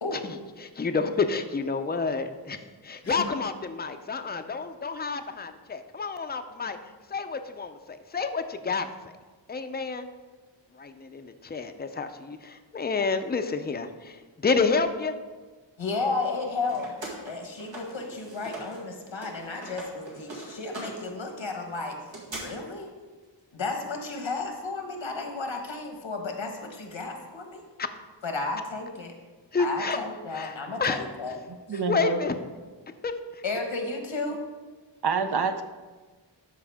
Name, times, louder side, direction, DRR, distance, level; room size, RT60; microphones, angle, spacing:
voice 1, 0.1-6.8 7.1-8.9 9.5-10.1 10.7-15.1 27.8-27.9 29.5-30.0 30.3-30.5 30.8-31.0 31.9-32.3 33.0-33.4, left 4 dB, 20° left, 8 dB, 0.5 m, -29 dB
voice 2, 15.8-16.9 17.2-22.0 22.3-22.9 23.5-27.6 28.2-29.1 29.6-31.4 31.7-31.8 33.4-34.4, left 3 dB, 85° left, 3 dB, 1.3 m, -33 dB
sound 1, 16.2-18.8 19.1-22.4, right 2 dB, 80° right, 2.1 m, -42 dB
voice 3, 31.7-32.2 35.0-35.6, right 5 dB, 60° right, 8 dB, 0.6 m, -26 dB
12.5 x 4.7 x 3.5 m, 1.4 s
wide cardioid pair, 60°, 45 cm